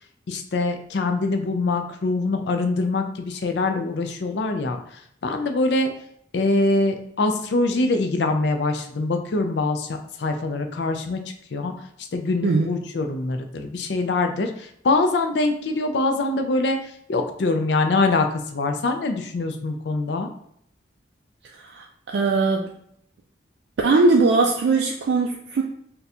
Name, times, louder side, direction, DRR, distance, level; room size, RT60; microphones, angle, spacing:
voice 1, 0.3-4.8 5.2-5.9 6.3-11.2 11.5-11.7 12.1-16.8 17.1-20.3, left 2 dB, 65° left, 6 dB, 0.4 m, -24 dB
voice 2, 21.6-22.7 23.8-25.6, right 3 dB, 65° right, 0 dB, 0.3 m, -20 dB
4.1 x 2.3 x 2.4 m, 0.69 s
head